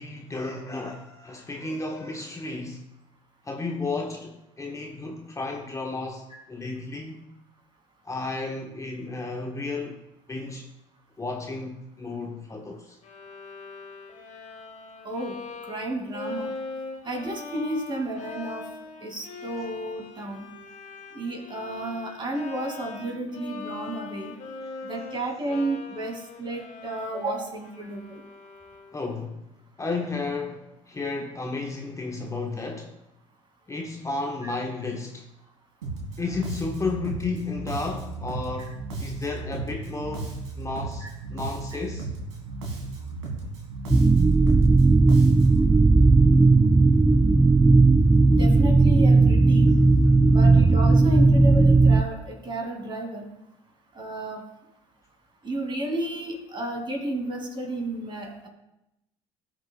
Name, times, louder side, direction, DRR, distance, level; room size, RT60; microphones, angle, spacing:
voice 1, 0.0-2.8 3.4-7.3 8.0-10.0 10.3-10.7 11.2-13.0 28.9-29.5 29.8-33.0 33.7-35.3 36.2-40.3 40.6-42.1, left 3 dB, 20° left, 1.0 m, -33 dB
Bowed string instrument, 13.0-29.1, left 3 dB, 50° left, 1.4 m, -41 dB
voice 2, 15.0-15.4 15.6-16.5 17.0-18.6 19.0-20.5 21.1-24.3 24.8-28.2 34.4-34.5 38.6-38.7 41.0-41.1 48.3-49.7 50.3-53.3 53.9-54.4 55.4-58.5, right 1 dB, 30° right, 2.4 m, -32 dB
Bass guitar, 35.8-45.7, right 3 dB, 85° right, 1.8 m, -35 dB
sound 1, 43.9-52.0, right 3 dB, 10° right, 0.4 m, -16 dB
17.0 x 6.0 x 2.3 m
hypercardioid pair, 65°, 15 cm